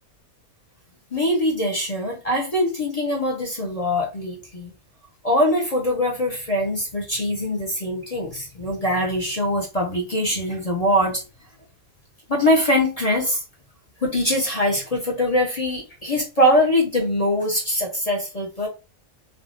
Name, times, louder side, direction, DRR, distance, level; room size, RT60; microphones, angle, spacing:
voice 1, 1.1-4.7 5.2-11.2 12.3-13.4 14.0-18.7, left 1 dB, 35° left, 0.7 m, -22 dB
3.5 x 2.4 x 2.5 m
omnidirectional pair, 1.5 m